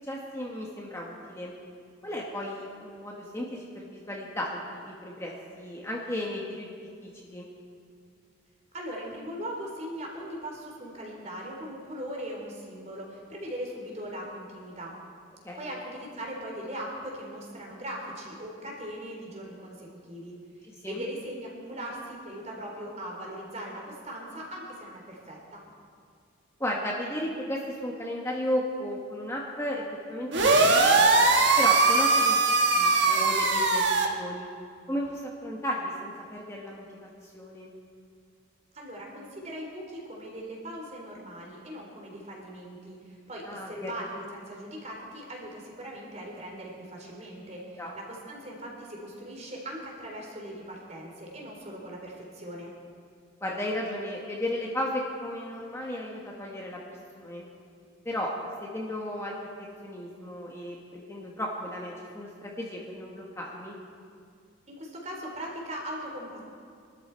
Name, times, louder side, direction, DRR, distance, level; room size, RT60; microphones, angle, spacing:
voice 1, 0.0-1.5 2.0-6.7 7.0-7.5 15.4-15.7 20.8-21.0 26.6-30.7 30.9-31.1 31.6-32.4 32.7-34.5 34.9-37.7 43.4-43.9 47.8-47.9 53.4-56.8 57.1-57.5 58.0-59.3 59.8-63.8, left 1 dB, 15° left, -3 dB, 1.5 m, -34 dB
voice 2, 8.7-14.9 15.5-20.4 20.6-25.6 38.7-52.7 64.7-66.4, equal, 35° right, -1 dB, 3.3 m, -39 dB
sound 1, 30.3-34.1, right 3 dB, 55° right, 1.5 m, -21 dB
24.5 x 12.5 x 4.5 m, 2.3 s
head